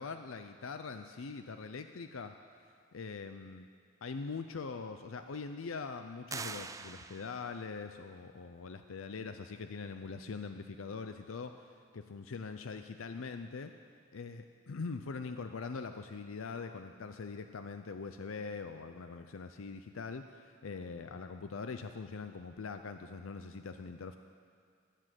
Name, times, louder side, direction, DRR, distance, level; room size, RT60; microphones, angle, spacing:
voice 1, 0.0-2.3 2.9-3.7 4.0-11.5 11.9-13.7 14.1-24.2, left 4 dB, 85° left, 8 dB, 0.6 m, -42 dB
sound 1, 6.3-7.7, right 5 dB, 15° right, 0.4 m, -43 dB
18.5 x 7.5 x 7.6 m, 2.3 s
head